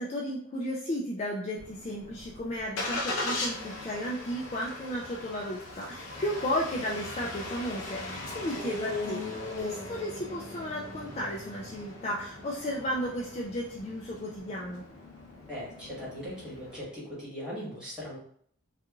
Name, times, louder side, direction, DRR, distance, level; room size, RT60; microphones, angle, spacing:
voice 1, 0.0-14.8, equal, 30° left, -4 dB, 0.3 m, -34 dB
Engine starting, 1.6-16.8, left 2 dB, 90° left, 0.7 m, -39 dB
voice 2, 15.4-18.2, equal, 5° right, -10 dB, 1.4 m, -39 dB
2.9 x 2.4 x 2.3 m, 0.63 s
head